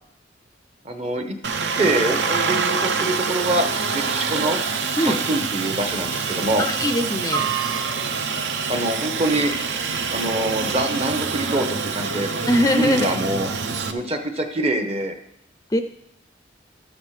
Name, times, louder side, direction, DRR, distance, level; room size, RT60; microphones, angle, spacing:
voice 1, 0.8-1.4 1.8-3.7 3.9-4.6 5.0-6.7 8.1-9.5 10.1-12.5 12.8-13.5 13.9-15.1, right 1 dB, 35° right, 6 dB, 0.9 m, -25 dB
Aircraft, 1.4-13.9, right 5 dB, 65° right, 0.6 m, -25 dB
voice 2, 6.6-7.5 12.5-13.1 13.3-13.4 15.7-15.8, left 1 dB, 20° left, 6 dB, 0.4 m, -21 dB
13.0 x 7.3 x 3.2 m, 0.77 s
head